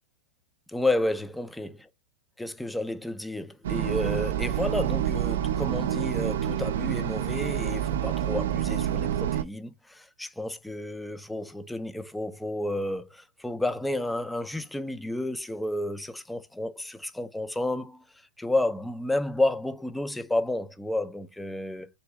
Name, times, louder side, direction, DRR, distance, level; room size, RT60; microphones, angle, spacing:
voice 1, 0.7-1.7 2.4-18.0 18.4-21.9, left 1 dB, 5° left, 0.4 m, -31 dB
sound 1, 3.6-9.4, right 11 dB, 75° right, 0.5 m, -28 dB
4.1 x 2.3 x 4.6 m
supercardioid pair, 155°, 0 cm